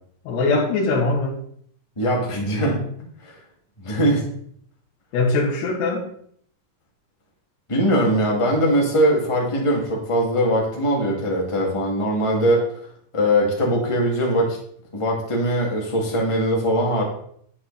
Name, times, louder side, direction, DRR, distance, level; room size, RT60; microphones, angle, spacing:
voice 1, 0.3-1.4 5.1-6.1, left 3 dB, 80° left, -5 dB, 3.6 m, -21 dB
voice 2, 1.9-3.4 3.8-4.2 7.7-12.6 13.1-14.6 14.9-17.0, equal, 15° left, -2 dB, 1.2 m, -21 dB
10.5 x 7.8 x 4.2 m, 0.64 s
omnidirectional pair, 4.9 m